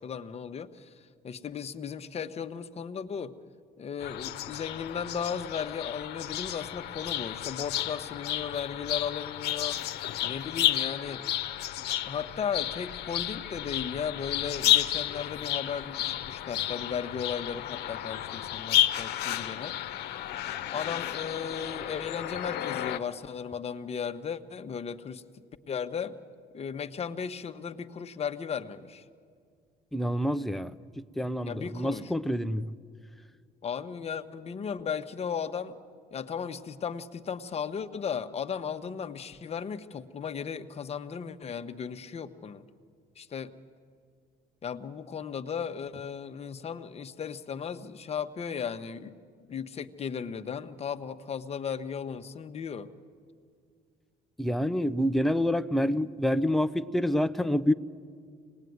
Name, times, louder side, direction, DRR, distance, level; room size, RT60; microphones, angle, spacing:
voice 1, 0.0-3.3 3.8-9.8 10.2-11.2 12.0-19.7 20.7-26.2 26.5-29.0 31.5-32.1 33.6-35.8 36.1-42.6 43.2-43.5 44.6-49.2 49.4-52.9, left 7 dB, 40° left, 8 dB, 1.1 m, -36 dB
sound 1, 4.0-23.0, left 12 dB, 75° left, 1.0 m, -32 dB
voice 2, 29.9-30.7 31.2-32.7 54.4-57.7, equal, ahead, 10 dB, 0.7 m, -27 dB
26.0 x 19.5 x 9.5 m, 2.1 s
cardioid pair, 110°, 17 cm